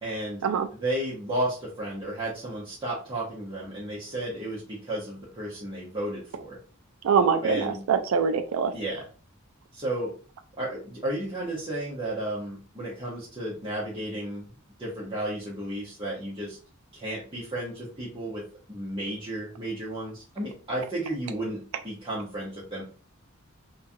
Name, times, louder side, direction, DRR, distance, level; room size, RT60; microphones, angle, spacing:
voice 1, 0.0-0.4 0.7-6.6 7.4-7.8 8.7-9.0 9.7-10.1 10.6-14.4 14.8-16.6 16.9-22.8, right 1 dB, 25° right, 0.8 m, -33 dB
voice 2, 7.0-8.7, right 6 dB, 80° right, 0.3 m, -24 dB
3.1 x 2.3 x 2.6 m
head